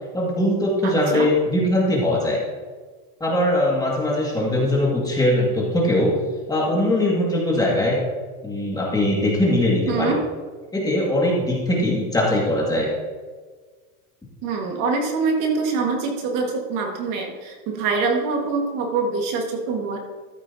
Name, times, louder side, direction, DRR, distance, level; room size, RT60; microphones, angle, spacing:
voice 1, 0.1-2.4 3.2-6.2 6.5-8.0 8.4-10.1 10.7-12.9, left 1 dB, 10° left, -3 dB, 2.0 m, -21 dB
voice 2, 0.8-1.3 9.9-10.2 14.4-20.0, right 4 dB, 45° right, 1 dB, 1.8 m, -24 dB
14.0 x 8.1 x 2.8 m, 1.4 s
supercardioid pair, 140°, 46 cm